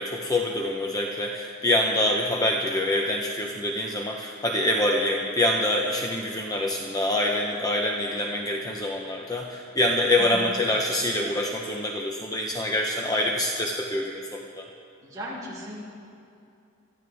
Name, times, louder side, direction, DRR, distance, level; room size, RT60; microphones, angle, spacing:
voice 1, 0.0-14.7, left 1 dB, 20° left, 0 dB, 0.8 m, -26 dB
voice 2, 15.0-15.7, equal, 20° right, -7 dB, 4.8 m, -36 dB
23.5 x 14.0 x 3.5 m, 2.6 s
head